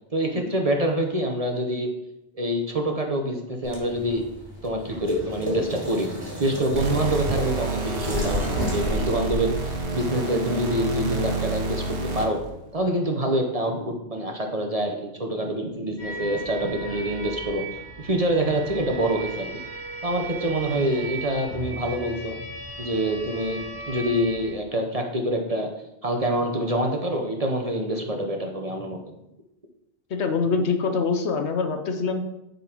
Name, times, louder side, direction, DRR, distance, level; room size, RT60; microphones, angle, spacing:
voice 1, 0.1-1.9 2.3-4.2 4.6-6.1 6.4-12.4 12.7-19.6 20.0-22.4 22.8-25.7 26.0-29.0, right 1 dB, 35° right, 2 dB, 0.8 m, -26 dB
sound 1, 3.6-9.8, left 1 dB, 20° right, 2.2 m, -32 dB
sound 2, 6.7-12.5, right 3 dB, 85° right, 1.5 m, -28 dB
sound 3, 16.0-24.5, right 2 dB, 20° left, 2.4 m, -36 dB
voice 2, 30.1-32.2, left 4 dB, 70° left, 7 dB, 1.0 m, -25 dB
9.9 x 4.0 x 4.5 m, 0.87 s
omnidirectional pair, 1.2 m